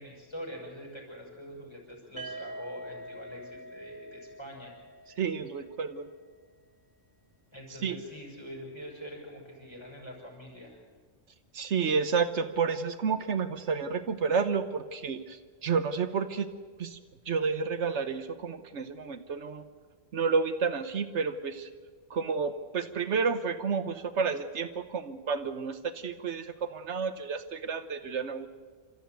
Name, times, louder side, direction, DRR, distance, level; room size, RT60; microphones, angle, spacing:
voice 1, 0.0-4.7 7.5-10.8, equal, 20° left, -2 dB, 6.2 m, -44 dB
sound 1, 2.2-6.0, right 1 dB, 15° right, 2.2 m, -45 dB
voice 2, 5.2-6.1 7.8-8.0 11.5-16.5 16.8-17.0 17.3-19.6 20.1-21.7 22.1-28.5, right 5 dB, 75° right, 10 dB, 1.2 m, -30 dB
27.0 x 13.5 x 9.3 m, 1.5 s
omnidirectional pair, 1.2 m